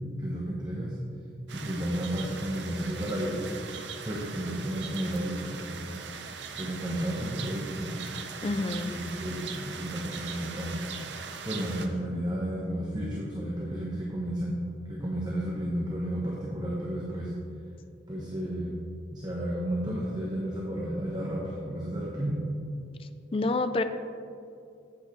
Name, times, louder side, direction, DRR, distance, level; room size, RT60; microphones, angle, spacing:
voice 1, 0.2-1.0 1.5-3.4 4.0-5.9 6.6-8.0 8.4-8.6 8.9-10.8 11.4-17.3 18.1-18.8 19.1-22.4, right 1 dB, 25° right, -4 dB, 0.9 m, -32 dB
sound 1, 1.5-11.9, right 5 dB, 80° right, 0.6 m, -40 dB
voice 2, 8.4-8.9 23.0-23.8, left 2 dB, 30° left, 9 dB, 0.4 m, -28 dB
8.5 x 8.2 x 3.2 m, 2.5 s
head